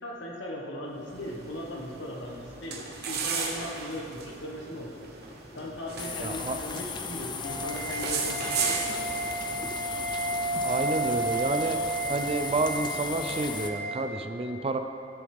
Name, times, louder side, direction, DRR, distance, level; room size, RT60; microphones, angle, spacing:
voice 1, 0.0-5.0 5.5-8.9, left 1 dB, 85° left, -2 dB, 1.5 m, -38 dB
sound 1, 1.0-12.7, right 5 dB, 60° right, 1.0 m, -37 dB
sound 2, 6.0-13.7, left 5 dB, 25° left, 0.4 m, -37 dB
voice 2, 6.2-6.6 10.6-11.8 12.1-14.8, right 3 dB, 30° right, 7 dB, 0.4 m, -29 dB
sound 3, 7.4-13.9, right 2 dB, 55° left, 1.8 m, -32 dB
13.0 x 6.2 x 3.5 m, 2.6 s
head